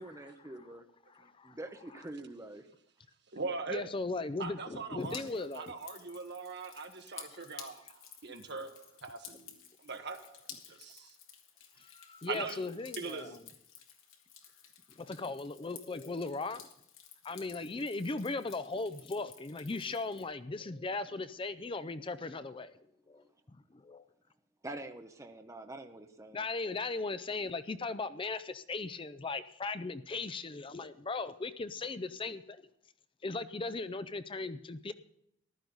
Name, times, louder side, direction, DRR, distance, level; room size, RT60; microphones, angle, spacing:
voice 1, 0.0-0.8 1.4-2.7 24.6-26.5, right 2 dB, 15° right, 5 dB, 0.8 m, -45 dB
voice 2, 1.1-1.6 3.7-5.7 7.3-7.4 10.7-10.8 11.8-13.4 14.9-16.7 17.2-24.0 26.3-32.6 33.2-34.9, left 3 dB, 25° left, 12 dB, 0.5 m, -38 dB
voice 3, 3.3-3.8 4.4-11.2 12.3-12.6 13.0-13.4, right 4 dB, 55° right, 6 dB, 1.5 m, -41 dB
Drip, 5.0-20.2, left 8 dB, 70° left, 1.9 m, -53 dB
15.0 x 12.0 x 4.0 m, 0.75 s
head